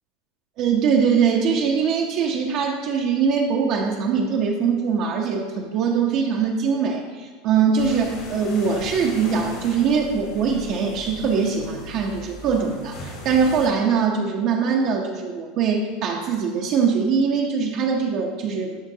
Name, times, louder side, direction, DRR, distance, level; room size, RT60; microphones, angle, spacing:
voice 1, 0.6-18.8, right 6 dB, 50° right, -1 dB, 0.8 m, -22 dB
sound 1, 7.8-13.7, left 2 dB, 55° left, 2.0 m, -39 dB
11.0 x 4.4 x 2.8 m, 1.4 s
supercardioid pair, 120°, 0 cm